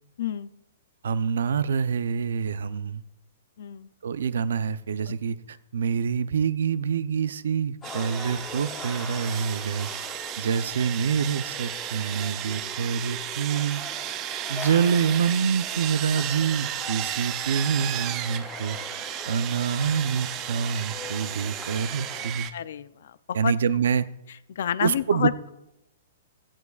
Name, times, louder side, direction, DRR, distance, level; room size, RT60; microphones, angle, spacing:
voice 1, 0.2-0.5 3.6-3.9 22.5-23.5 24.5-25.5, left 10 dB, 55° left, 16 dB, 0.5 m, -29 dB
voice 2, 1.0-3.0 4.0-9.9 10.4-13.8 14.5-18.8 19.3-22.5 23.3-24.1 24.8-25.3, right 7 dB, 75° right, 15 dB, 0.6 m, -26 dB
sound 1, 7.8-22.3, left 5 dB, 10° left, 0.7 m, -42 dB
Sawing, 7.8-22.5, right 12 dB, 20° right, 0.4 m, -34 dB
16.0 x 14.0 x 2.4 m, 0.90 s
hypercardioid pair, 180°, 0 cm